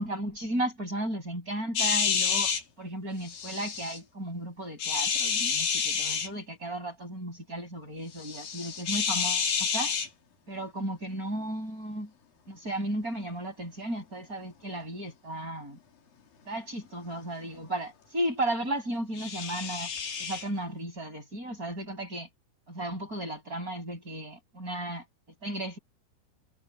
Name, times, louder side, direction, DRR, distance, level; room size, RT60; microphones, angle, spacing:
voice 1, 0.0-9.9 10.5-12.1 12.5-15.8 16.5-19.9 20.2-22.3 22.7-25.0 25.4-25.8, right 1 dB, 20° right, 7.6 m, -34 dB
sound 1, 1.8-2.6 3.2-4.0 4.8-6.3 8.2-10.1 19.2-20.5, left 6 dB, 60° left, 5.0 m, -29 dB
omnidirectional pair, 4.6 m